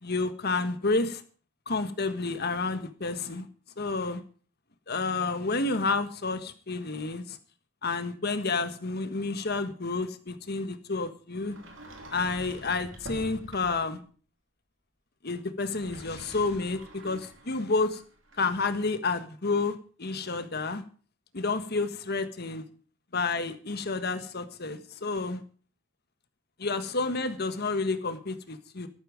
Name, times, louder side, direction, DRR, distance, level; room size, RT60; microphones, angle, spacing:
voice 1, 0.0-1.2 1.7-3.5 3.8-4.2 4.9-7.4 7.8-11.6 12.1-14.0 15.2-18.0 18.4-20.8 21.3-22.6 23.1-25.4 26.6-28.9, left 3 dB, 55° left, 10 dB, 1.5 m, -30 dB
Sliding door, 11.4-13.9 15.6-18.8, equal, 65° right, 3.2 m, -47 dB
13.0 x 12.5 x 5.1 m, 0.40 s
head